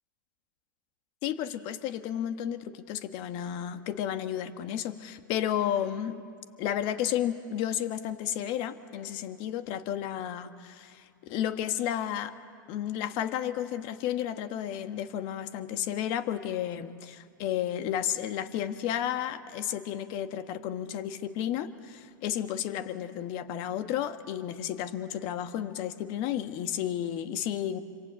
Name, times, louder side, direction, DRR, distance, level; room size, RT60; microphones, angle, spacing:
voice 1, 1.2-6.2 6.6-12.3 12.7-27.8, left 10 dB, 45° left, 9 dB, 1.6 m, -32 dB
26.5 x 26.5 x 8.4 m, 2.2 s
hypercardioid pair, 110°, 11 cm